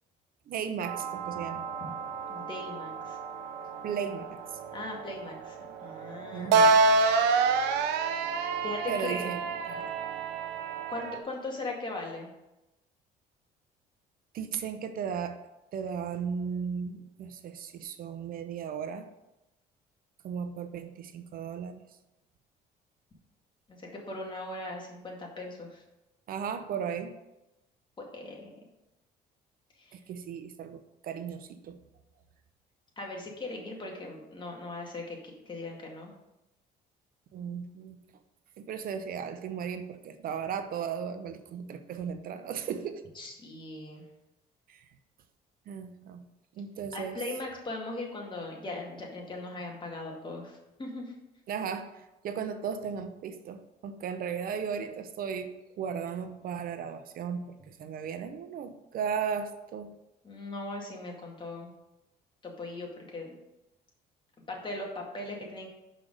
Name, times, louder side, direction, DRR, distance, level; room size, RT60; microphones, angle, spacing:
voice 1, 0.5-1.6 3.8-4.4 6.3-6.8 7.3-7.6 8.9-9.4 9.7-9.9 14.3-15.4 15.7-19.1 20.2-21.8 26.3-27.2 29.9-31.8 37.3-38.0 38.6-43.0 44.7-44.8 45.7-46.2 46.6-47.2 51.5-59.9, right 7 dB, 60° right, 9 dB, 0.8 m, -36 dB
sound 1, 0.8-11.2, right 4 dB, 90° right, 0.7 m, -28 dB
voice 2, 2.3-3.2 4.7-5.6 5.8-6.6 8.6-9.3 10.9-12.3 23.7-25.8 28.0-28.5 29.8-30.0 33.0-36.1 43.2-44.0 46.9-51.1 60.2-61.7 62.4-63.3 64.5-65.7, left 2 dB, 30° left, -1 dB, 2.1 m, -39 dB
5.8 x 5.1 x 6.5 m, 0.95 s
cardioid pair, 110°, 17 cm